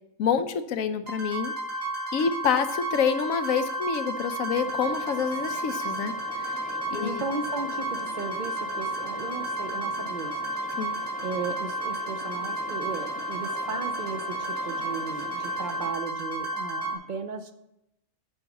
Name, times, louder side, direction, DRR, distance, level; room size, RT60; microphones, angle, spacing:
voice 1, 0.2-1.5 2.1-6.5 6.9-7.2 10.8-10.9, left 6 dB, 85° left, 10 dB, 1.1 m, -27 dB
sound 1, 1.1-16.9, right 1 dB, 75° right, 3.2 m, -32 dB
sound 2, 4.5-15.9, left 7 dB, 65° left, 0.9 m, -44 dB
voice 2, 6.9-10.8 11.2-17.5, right 4 dB, 40° right, 8 dB, 0.8 m, -36 dB
10.0 x 5.2 x 7.1 m, 0.83 s
omnidirectional pair, 1.4 m